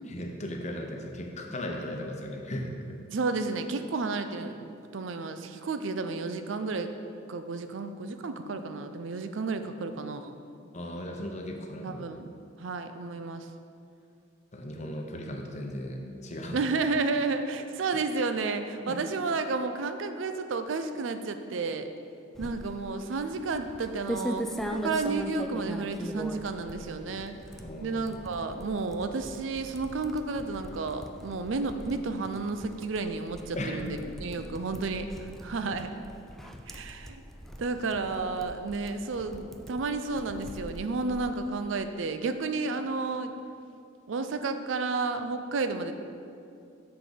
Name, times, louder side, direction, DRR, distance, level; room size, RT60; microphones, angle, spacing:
voice 1, 0.1-2.8 10.7-12.0 14.5-16.6 18.9-19.0 27.6-28.1 33.6-34.4, left 1 dB, 35° left, 2 dB, 0.8 m, -37 dB
voice 2, 3.1-6.9 7.3-10.4 11.8-12.3 12.6-13.5 16.5-21.9 22.4-27.3 27.8-35.9 36.7-37.2 37.6-43.3 44.1-45.9, right 3 dB, 75° right, 8 dB, 0.5 m, -32 dB
sound 1, 22.4-41.5, equal, ahead, 0.3 m, -41 dB
6.7 x 6.1 x 5.1 m, 2.4 s
head